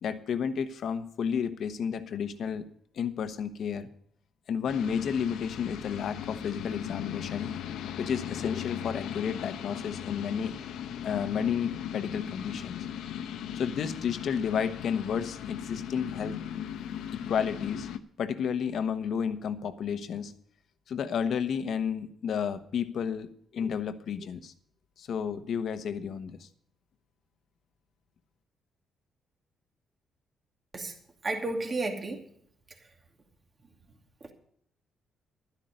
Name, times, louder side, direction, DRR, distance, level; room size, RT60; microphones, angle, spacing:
voice 1, 0.0-2.7 2.9-3.9 4.5-7.5 8.0-10.6 11.0-12.9 13.6-16.4 17.1-17.9 18.2-20.3 20.9-24.5 25.0-26.5, left 7 dB, 65° left, 9 dB, 1.2 m, -31 dB
sound 1, 4.7-18.0, left 9 dB, 85° left, 0.9 m, -38 dB
voice 2, 31.2-32.2 32.7-32.9 34.2-34.3, right 2 dB, 35° right, 3 dB, 2.5 m, -33 dB
12.5 x 10.5 x 5.2 m, 0.66 s
cardioid pair, 90°, 0 cm